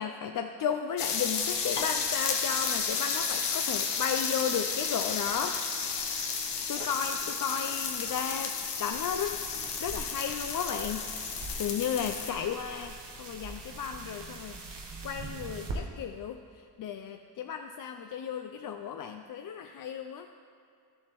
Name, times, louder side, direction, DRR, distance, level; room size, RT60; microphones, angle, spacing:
voice 1, 0.0-5.9 6.7-8.5 8.8-14.6 15.0-16.4 16.8-20.3, left 7 dB, 55° left, 6 dB, 0.5 m, -34 dB
sound 1, 1.0-12.3, left 5 dB, 80° left, 0.9 m, -32 dB
sound 2, 8.9-15.8, right 3 dB, 85° right, 1.1 m, -43 dB
11.0 x 7.0 x 3.0 m, 2.4 s
cardioid pair, 55°, 41 cm